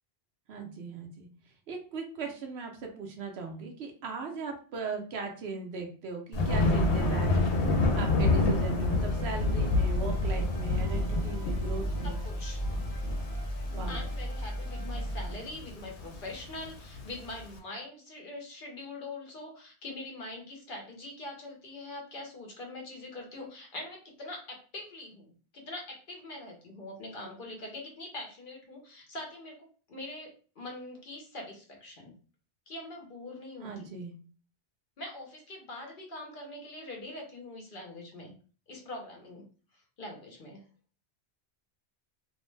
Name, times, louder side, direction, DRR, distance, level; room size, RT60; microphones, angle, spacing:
voice 1, 0.5-1.3 1.7-7.5 7.9-12.2 13.7-14.0 33.6-34.1, right 4 dB, 70° right, 3 dB, 0.9 m, -38 dB
Thunder, 6.3-17.4, left 2 dB, 90° left, 0.9 m, -29 dB
sound 1, 8.9-15.3, equal, 20° right, 0.7 m, -36 dB
voice 2, 12.0-12.6 13.9-32.1 32.7-33.9 35.0-38.3 38.7-39.5 40.0-40.6, left 2 dB, 55° left, 0 dB, 0.8 m, -43 dB
2.6 x 2.1 x 3.1 m, 0.40 s
omnidirectional pair, 1.1 m